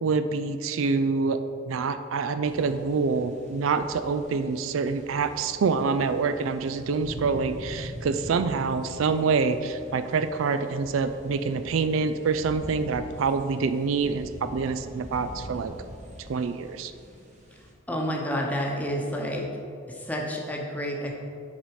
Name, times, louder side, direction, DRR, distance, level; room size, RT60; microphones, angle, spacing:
voice 1, 0.0-1.4 1.6-15.7 16.3-16.9, right 4 dB, 85° right, 10 dB, 0.4 m, -26 dB
sound 1, 2.4-17.7, equal, 40° right, 1.3 m, -44 dB
voice 2, 17.9-19.5 19.9-21.1, equal, 10° left, -1 dB, 0.9 m, -29 dB
9.5 x 4.1 x 4.8 m, 2.4 s
head